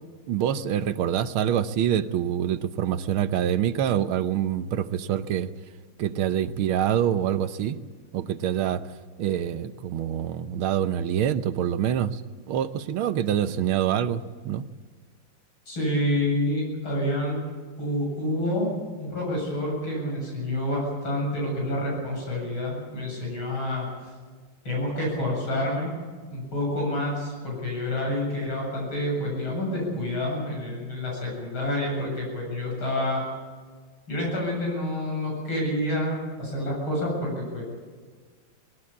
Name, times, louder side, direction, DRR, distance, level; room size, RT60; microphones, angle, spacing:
voice 1, 0.3-5.5 6.0-7.8 8.1-12.2 12.5-14.6, right 10 dB, 85° right, 12 dB, 1.7 m, -26 dB
voice 2, 15.7-17.4 17.8-18.7 19.0-23.9 24.7-25.9 26.3-33.2 34.1-37.7, left 1 dB, 90° left, -2 dB, 8.6 m, -28 dB
19.5 x 18.0 x 8.6 m, 1.5 s
omnidirectional pair, 2.2 m